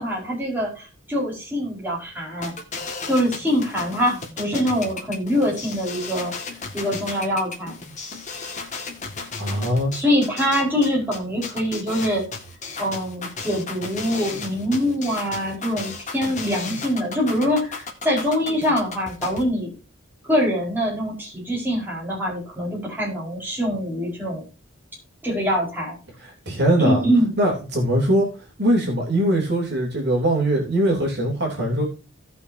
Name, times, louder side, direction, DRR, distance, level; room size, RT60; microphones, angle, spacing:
voice 1, 0.0-2.6 3.1-6.3 6.7-7.7 9.9-12.3 12.8-19.7 20.2-24.5 25.2-26.0 26.8-27.3, equal, 10° right, -4 dB, 4.6 m, -24 dB
sound 1, 2.4-19.4, left 4 dB, 35° left, 2.0 m, -34 dB
voice 2, 9.4-9.9 26.2-27.0 27.4-28.3 28.6-31.8, right 1 dB, 55° right, 0 dB, 3.2 m, -21 dB
17.0 x 5.9 x 2.7 m, 0.33 s
head